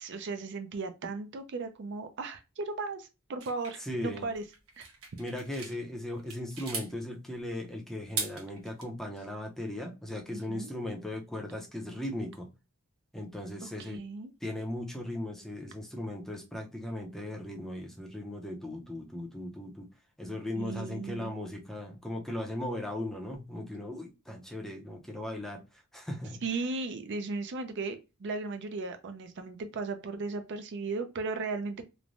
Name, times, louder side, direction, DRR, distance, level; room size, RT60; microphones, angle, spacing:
voice 1, 0.0-4.4 4.8-4.9 10.3-10.7 13.6-14.3 20.6-21.3 26.4-31.9, right 3 dB, 55° right, 0.4 m, -36 dB
sound 1, 3.4-5.8 6.2-6.9 7.9-8.8, right 5 dB, 75° right, 1.0 m, -39 dB
voice 2, 3.8-4.3 5.2-12.5 13.1-14.0 14.4-19.9 20.2-26.4, left 1 dB, ahead, 0.5 m, -38 dB
3.1 x 2.1 x 2.4 m
head